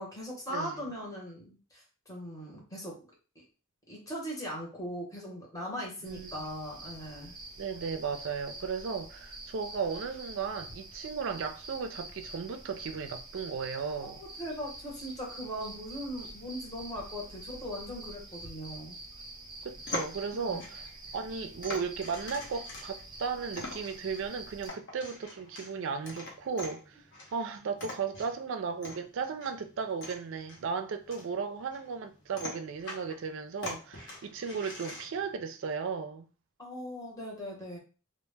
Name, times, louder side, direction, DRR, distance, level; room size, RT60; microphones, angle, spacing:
voice 1, 0.0-3.0 3.9-7.3 14.0-19.0 20.3-20.6 36.6-37.8, equal, 15° left, 0.8 m, -39 dB
sound 1, 6.0-24.7, right 2 dB, 20° right, 0.7 m, -46 dB
voice 2, 6.0-6.4 7.6-14.2 19.6-20.9 21.1-27.0 27.3-36.3, right 5 dB, 60° right, 0.3 m, -35 dB
sound 2, 19.6-35.3, left 2 dB, 55° left, 0.6 m, -44 dB
2.1 x 2.0 x 3.2 m
head